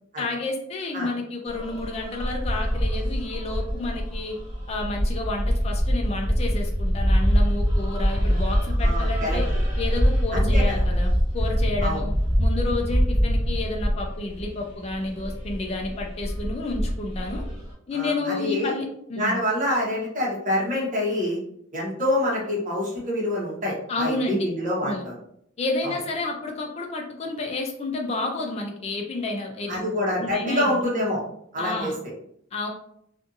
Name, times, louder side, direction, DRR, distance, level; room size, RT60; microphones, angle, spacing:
voice 1, 0.2-4.4 4.7-9.5 9.8-12.1 12.4-17.4 17.9-19.4 23.9-24.5 24.8-25.1 25.6-29.8 30.2-30.9 31.6-32.0 32.5-32.7, left 2 dB, 35° left, 1 dB, 0.4 m, -30 dB
sound 1, 1.5-17.7, equal, 10° right, 1.5 m, -24 dB
voice 2, 8.8-9.4 10.3-10.6 11.8-12.0 17.9-18.7 19.2-21.4 21.7-25.1 29.7-31.2 31.5-31.9, left 1 dB, 40° right, -4 dB, 1.0 m, -26 dB
2.5 x 2.5 x 2.6 m, 0.72 s
head